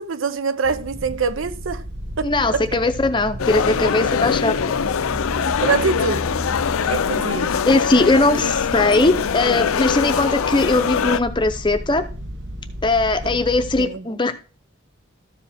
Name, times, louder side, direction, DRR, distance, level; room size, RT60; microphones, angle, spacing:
voice 1, 0.0-1.8 2.2-2.7 5.6-6.3 6.9-7.6 13.8-14.0, right 5 dB, 70° right, 0.6 m, -24 dB
sound 1, 0.6-13.8, equal, 55° right, 1.1 m, -33 dB
voice 2, 2.2-4.6 7.6-12.0 12.8-14.3, left 2 dB, 20° left, 0.6 m, -19 dB
sound 2, 3.4-11.2, left 7 dB, 85° left, 0.4 m, -22 dB
13.0 x 5.0 x 3.5 m
head